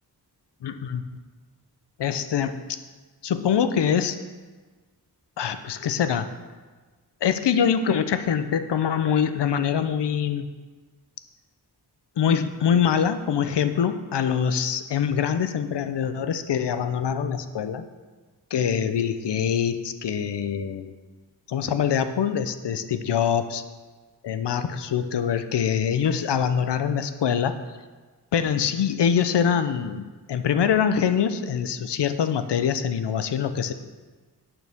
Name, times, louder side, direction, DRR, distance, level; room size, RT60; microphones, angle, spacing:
voice 1, 0.6-1.0 2.0-2.6 3.2-4.2 5.4-6.3 7.2-10.5 12.2-17.9 18.5-20.9 21.5-23.6 24.2-27.6 28.3-33.7, left 8 dB, 85° left, 11 dB, 0.7 m, -24 dB
10.5 x 9.0 x 3.5 m, 1.4 s
wide cardioid pair, 120°, 40 cm